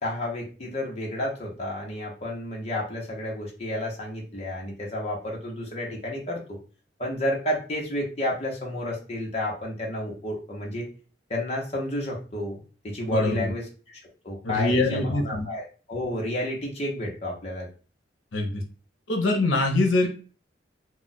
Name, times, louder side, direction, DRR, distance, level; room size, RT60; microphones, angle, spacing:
voice 1, 0.0-6.6 7.0-10.9 11.3-12.6 12.8-14.0 14.2-17.7, left 1 dB, 35° left, -2 dB, 0.7 m, -31 dB
voice 2, 13.1-13.5 14.4-15.5 18.3-18.6 19.1-20.1, left 2 dB, 85° left, 3 dB, 0.6 m, -24 dB
2.3 x 2.1 x 3.9 m, 0.37 s
head